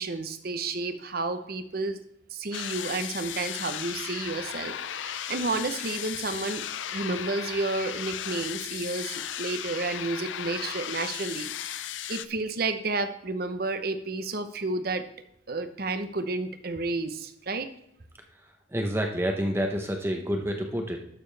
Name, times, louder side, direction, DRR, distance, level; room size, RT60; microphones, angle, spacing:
voice 1, 0.0-2.0 2.3-6.6 6.9-11.8 12.1-15.0 15.5-17.7, right 3 dB, 50° right, 9 dB, 0.8 m, -31 dB
sound 1, 2.5-12.3, left 10 dB, 75° left, 0.5 m, -36 dB
voice 2, 18.7-21.0, equal, 10° right, 2 dB, 0.8 m, -28 dB
12.0 x 6.8 x 3.4 m, 0.78 s
head